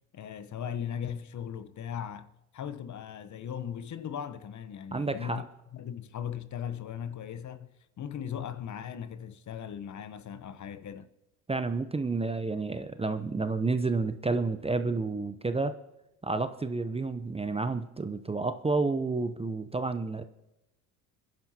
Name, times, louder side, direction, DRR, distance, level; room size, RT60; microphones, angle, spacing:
voice 1, 0.1-2.3 2.5-5.4 5.7-7.7 8.0-11.1, left 8 dB, 40° left, 0.9 m, -38 dB
voice 2, 4.9-5.4 11.5-15.8 16.2-20.2, right 3 dB, 15° right, 0.7 m, -30 dB
26.0 x 10.5 x 2.8 m
hypercardioid pair, 75°, 45 cm